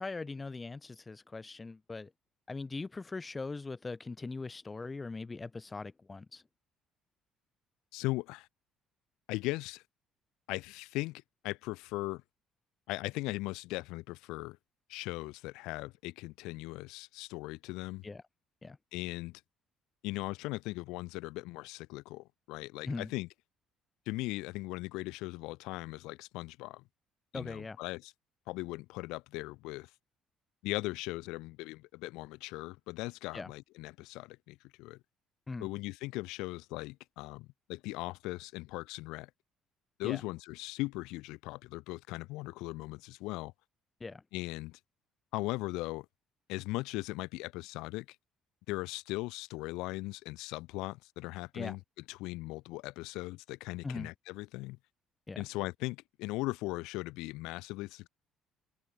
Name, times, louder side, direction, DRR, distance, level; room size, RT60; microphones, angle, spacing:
voice 1, 0.0-2.1 2.5-6.4 18.0-18.2 18.6-18.8 22.8-23.1 27.3-27.8 33.3-33.5 35.5-35.7 40.0-40.2 44.0-44.2 51.5-51.8 53.8-54.1 55.3-55.5, left 3 dB, 25° left, 2.0 m, -40 dB
voice 2, 7.9-8.5 9.3-9.8 10.5-12.2 12.9-14.6 14.9-18.0 18.9-19.4 20.0-23.3 24.1-26.8 27.3-28.1 28.5-29.9 30.6-35.0 35.6-39.3 40.0-43.5 44.3-44.8 45.3-46.1 46.5-48.1 48.7-51.8 52.1-54.8 55.4-58.1, left 21 dB, 75° left, 5.5 m, -39 dB
hypercardioid pair, 55°, 0 cm